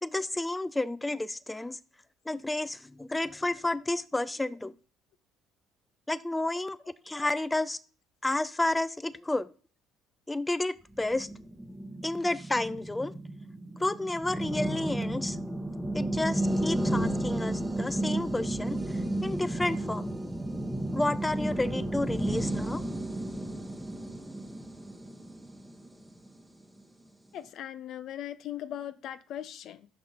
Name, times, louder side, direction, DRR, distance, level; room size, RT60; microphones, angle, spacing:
voice 1, 0.0-1.8 2.3-4.7 6.1-6.8 7.1-7.8 8.2-9.5 10.3-11.3 12.0-13.1 13.8-15.4 15.9-20.1 20.9-22.8, left 2 dB, 15° left, 0.4 m, -31 dB
sound 1, 10.9-26.4, right 1 dB, 5° right, 1.0 m, -33 dB
voice 2, 27.3-29.9, left 11 dB, 65° left, 0.5 m, -39 dB
5.8 x 5.4 x 3.7 m
hypercardioid pair, 65°, 0 cm